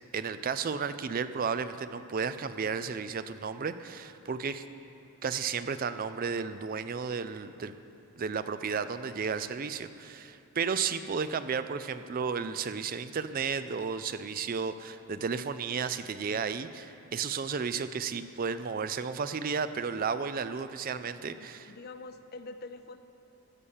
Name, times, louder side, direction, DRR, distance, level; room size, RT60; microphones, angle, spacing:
voice 1, 0.1-4.6 5.2-7.7 8.2-21.7, right 5 dB, 40° right, 12 dB, 0.4 m, -33 dB
voice 2, 21.2-23.0, left 3 dB, 45° left, 10 dB, 0.5 m, -45 dB
15.0 x 7.0 x 7.3 m, 2.8 s
head